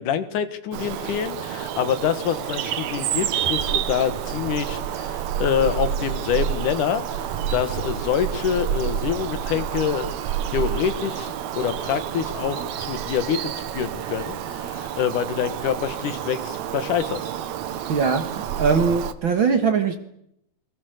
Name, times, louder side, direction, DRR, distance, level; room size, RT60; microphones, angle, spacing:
voice 1, 0.0-10.1 10.5-17.3, left 8 dB, 75° left, 3.0 m, -26 dB
Bird vocalization bird call bird song, 0.7-19.1, right 9 dB, 65° right, 2.3 m, -29 dB
voice 2, 17.9-20.0, right 5 dB, 45° right, 1.8 m, -21 dB
29.0 x 22.5 x 6.6 m
omnidirectional pair, 3.6 m